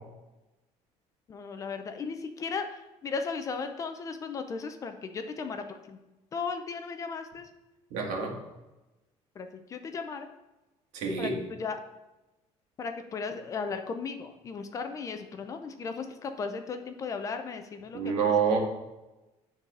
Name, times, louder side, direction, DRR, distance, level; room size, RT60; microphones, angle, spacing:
voice 1, 1.3-2.7 3.0-6.0 6.3-7.5 9.4-10.3 11.2-11.3 11.6-11.8 12.8-18.3, left 5 dB, 25° left, 7 dB, 0.5 m, -36 dB
voice 2, 7.9-8.3 10.9-11.3 17.9-18.6, right 6 dB, 90° right, 0 dB, 1.8 m, -27 dB
9.9 x 4.0 x 5.3 m, 1.0 s
cardioid pair, 175°, 12 cm